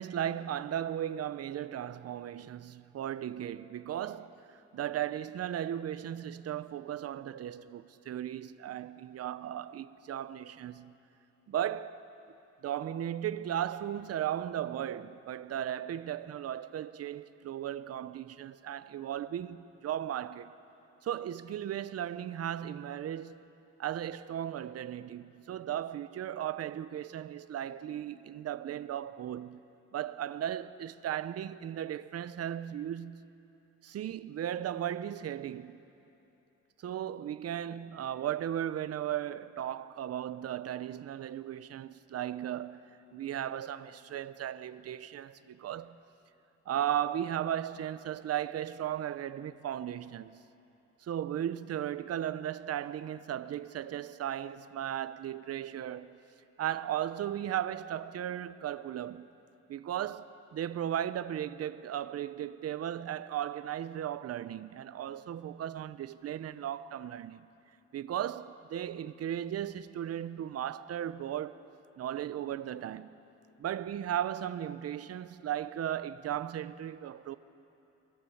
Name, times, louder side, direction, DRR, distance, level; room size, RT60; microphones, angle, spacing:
voice 1, 0.0-4.3 4.7-10.9 11.5-12.0 12.6-20.5 21.0-23.5 23.8-29.6 29.9-33.3 33.8-35.8 36.8-42.8 43.1-46.0 46.7-50.4 51.0-56.2 56.6-59.3 59.7-67.5 67.9-71.6 72.0-73.2 73.6-77.4, right 10 dB, 55° right, 0.7 m, -36 dB
23.5 x 18.0 x 7.2 m
cardioid pair, 90°, 30 cm